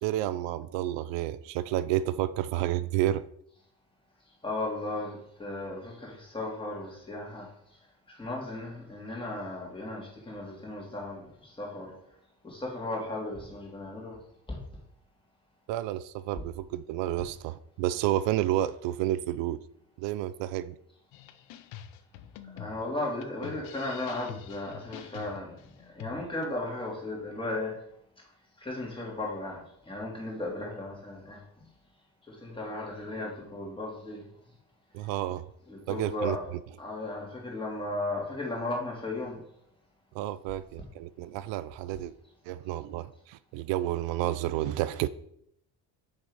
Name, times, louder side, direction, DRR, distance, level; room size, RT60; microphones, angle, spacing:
voice 1, 0.0-3.2 15.7-19.6 20.0-20.7 34.9-35.4 35.9-36.4 40.1-42.1 42.5-45.1, right 13 dB, 80° right, 0.5 m, -30 dB
voice 2, 4.4-7.5 8.1-11.9 12.4-14.2 14.5-14.6 22.6-25.6 25.9-27.8 28.6-31.4 32.3-34.2 35.7-36.4 36.8-39.4, left 2 dB, 10° left, 2.7 m, -35 dB
sound 1, 21.1-26.5, left 10 dB, 85° left, 0.9 m, -46 dB
6.6 x 6.4 x 4.9 m
cardioid pair, 130°, 44 cm